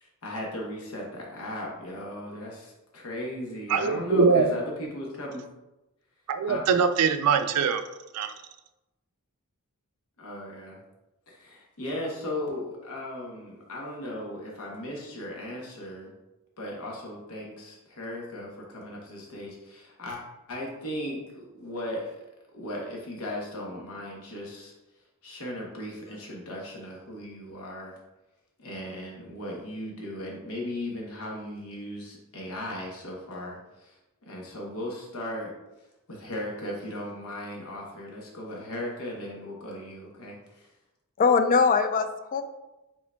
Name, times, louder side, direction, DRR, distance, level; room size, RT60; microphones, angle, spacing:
voice 1, 0.0-5.4 6.4-6.6 10.2-10.8 11.3-16.1 16.6-20.2 20.5-22.2 22.5-24.7 25.2-28.0 28.6-35.5 36.1-40.7, left 1 dB, 70° left, -2 dB, 0.9 m, -37 dB
voice 2, 3.7-4.5 6.3-7.8 8.1-8.3, right 5 dB, 90° right, 8 dB, 0.4 m, -22 dB
voice 3, 41.2-42.4, left 5 dB, 40° left, 8 dB, 0.3 m, -22 dB
5.0 x 3.7 x 2.2 m, 1.0 s
head